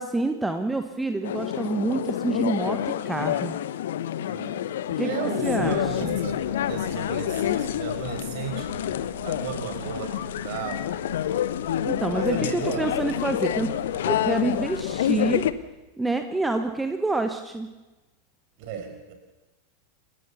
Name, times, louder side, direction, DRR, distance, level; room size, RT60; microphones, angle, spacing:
voice 1, 0.0-3.5 5.0-6.2 11.8-13.8 14.1-15.5 16.0-17.7, right 2 dB, 5° right, 7 dB, 1.3 m, -27 dB
sound 1, 1.2-15.5, left 11 dB, 60° left, 0.9 m, -28 dB
voice 2, 4.3-4.6 5.0-9.0 9.2-10.9 12.1-12.9 14.2-14.4 18.6-19.1, right 6 dB, 45° right, 6 dB, 5.4 m, -35 dB
sound 2, 5.4-15.5, right 1 dB, 80° right, 6.5 m, -43 dB
29.0 x 15.0 x 7.0 m, 1.1 s
figure-of-eight pair, 90°, 0 cm